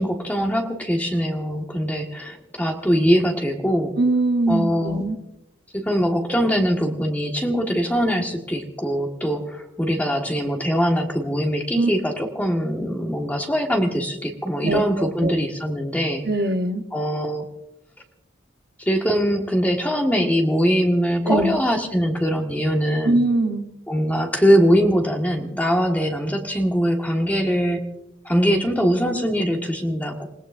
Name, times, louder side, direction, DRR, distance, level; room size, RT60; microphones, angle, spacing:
voice 1, 0.0-3.9 4.5-5.0 5.7-16.3 16.9-17.5 18.8-23.2 23.9-27.8 28.2-30.3, equal, 10° left, 1 dB, 1.6 m, -22 dB
voice 2, 4.0-5.2 11.7-11.9 14.6-15.3 16.2-16.8 21.2-21.6 23.0-23.6, right 2 dB, 50° right, 6 dB, 1.0 m, -21 dB
28.0 x 18.0 x 2.6 m, 0.88 s
head